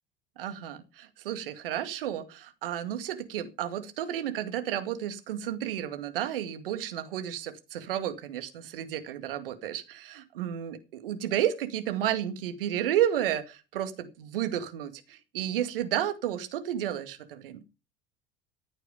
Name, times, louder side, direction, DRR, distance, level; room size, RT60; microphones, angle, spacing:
voice 1, 0.4-17.6, right 11 dB, 65° right, 9 dB, 2.2 m, -32 dB
15.5 x 9.0 x 5.2 m, 0.29 s
figure-of-eight pair, 70°, 30 cm